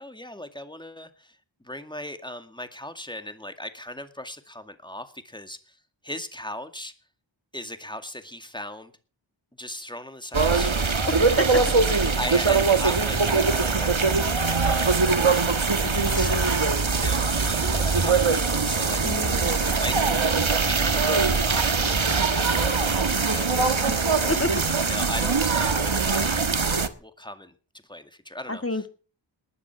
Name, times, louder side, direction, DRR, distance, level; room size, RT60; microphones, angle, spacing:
voice 1, 0.0-1.4 1.6-5.8 6.0-6.9 7.5-8.9 9.6-11.4 12.2-19.0 19.8-20.0 20.6-23.9 24.9-26.3 27.0-27.5 27.9-28.6, left 1 dB, 10° left, 9 dB, 2.2 m, -38 dB
sound 1, 10.3-26.9, right 4 dB, 75° right, 1.5 m, -22 dB
voice 2, 11.1-11.6 15.8-16.7 19.0-20.0 24.3-24.5 28.5-28.9, left 1 dB, 30° left, 10 dB, 1.9 m, -30 dB
19.5 x 11.0 x 6.0 m, 0.39 s
wide cardioid pair, 40°, 48 cm